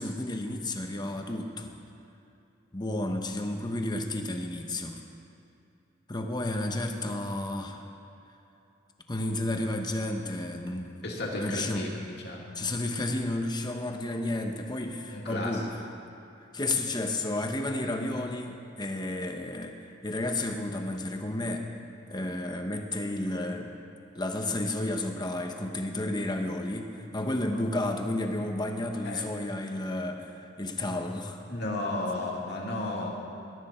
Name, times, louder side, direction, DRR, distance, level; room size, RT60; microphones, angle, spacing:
voice 1, 0.0-1.8 2.7-5.0 6.1-7.8 9.1-11.0 11.4-11.9 12.5-15.7 16.5-21.7 22.1-23.8 24.1-31.4, left 1 dB, 20° left, 4 dB, 1.1 m, -32 dB
voice 2, 11.0-12.4 15.1-15.6 27.5-27.6 29.0-29.2 31.5-33.1, left 2 dB, 60° left, -2 dB, 2.5 m, -33 dB
21.0 x 12.5 x 4.5 m, 2.7 s
head